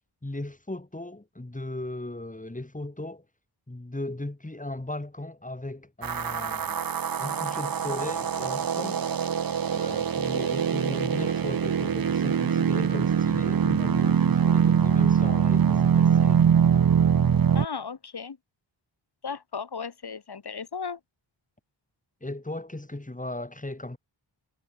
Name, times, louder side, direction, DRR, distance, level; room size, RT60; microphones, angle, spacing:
voice 1, 0.2-3.2 3.7-6.8 7.2-9.0 9.7-16.6 22.2-24.0, left 1 dB, 15° left, 4.9 m, -36 dB
sound 1, 6.0-17.7, right 7 dB, 50° right, 0.8 m, -23 dB
voice 2, 17.5-18.4 19.2-21.0, left 5 dB, 55° left, 2.6 m, -35 dB
wide cardioid pair, 105°, 47 cm